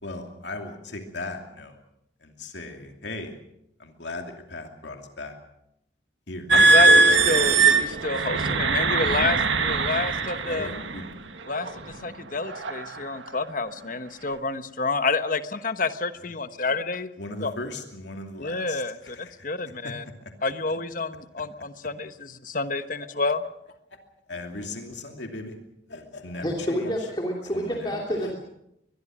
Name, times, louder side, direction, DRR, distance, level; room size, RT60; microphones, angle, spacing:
voice 1, 0.0-1.8 2.2-3.3 3.8-5.3 6.3-6.8 9.2-9.3 10.5-11.2 17.2-19.3 20.2-20.3 24.3-25.5 25.9-26.9 27.5-27.9 28.2-28.3, left 2 dB, 70° left, 4 dB, 2.6 m, -37 dB
voice 2, 6.5-10.7 11.4-17.1 17.4-17.5 18.4-20.0 20.4-23.4, left 3 dB, 45° left, 10 dB, 1.2 m, -29 dB
sound 1, 6.5-11.0 11.7-11.9 12.5-12.8, right 3 dB, 85° right, 1.8 m, -20 dB
voice 3, 26.4-28.4, equal, 25° left, -1 dB, 2.8 m, -28 dB
23.5 x 21.5 x 6.3 m, 0.80 s
head